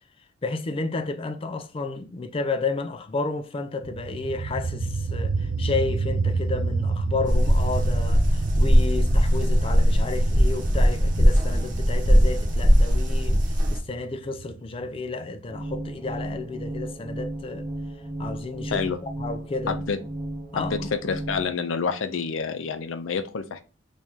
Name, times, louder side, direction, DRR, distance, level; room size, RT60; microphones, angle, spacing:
voice 1, 0.4-13.4 13.7-17.7 18.2-19.8 20.5-20.9, left 3 dB, 30° left, 0.4 m, -31 dB
sound 1, 3.8-15.4, right 4 dB, 85° right, 0.5 m, -30 dB
sound 2, 7.3-13.8, equal, 45° right, 0.8 m, -20 dB
sound 3, 15.5-21.5, right 1 dB, 20° right, 1.0 m, -34 dB
voice 2, 19.7-20.0 20.6-23.6, left 5 dB, 85° left, 0.5 m, -28 dB
3.1 x 2.8 x 3.6 m
head